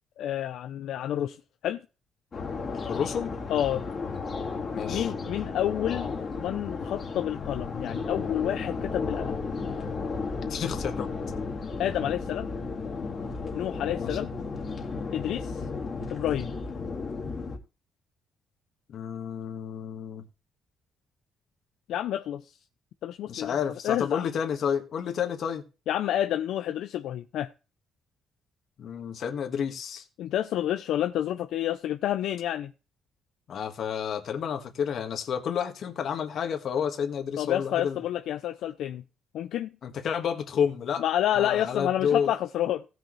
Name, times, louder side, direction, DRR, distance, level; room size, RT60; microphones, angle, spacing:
voice 1, 0.2-1.4 1.6-1.8 3.5-3.9 4.8-6.1 6.4-9.4 11.8-12.5 13.5-14.3 15.1-15.6 16.1-16.5 21.9-22.5 23.0-23.6 23.8-24.2 25.9-27.5 30.2-32.7 37.4-39.0 39.3-39.7 41.0-42.9, left 11 dB, 80° left, 0.5 m, -29 dB
sound 1, 2.3-17.6, left 4 dB, 35° left, 2.2 m, -34 dB
voice 2, 2.8-3.4 4.7-5.1 10.4-11.1 14.0-14.2 18.9-20.2 23.3-25.6 28.8-30.0 33.5-38.0 39.8-41.0 41.3-42.3, left 7 dB, 55° left, 1.7 m, -30 dB
17.5 x 6.4 x 3.2 m
cardioid pair, 130°, 0 cm